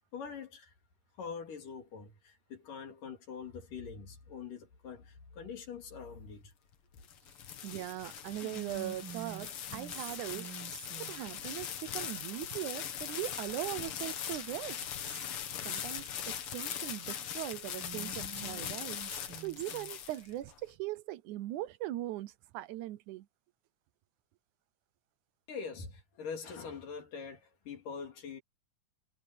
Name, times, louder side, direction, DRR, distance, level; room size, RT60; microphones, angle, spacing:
voice 1, 0.1-0.7 1.2-6.5 25.5-28.4, left 6 dB, 80° left, 4.8 m, -44 dB
sound 1, 6.7-20.5, left 9 dB, 55° left, 1.9 m, -41 dB
voice 2, 7.6-10.5 11.0-14.9 15.6-19.0 19.4-23.3, right 15 dB, 75° right, 2.1 m, -40 dB
Whispering, 8.4-11.2 13.3-14.0 14.3-14.4 14.8-16.0 17.8-19.9, right 6 dB, 45° right, 2.7 m, -47 dB
omnidirectional pair, 3.7 m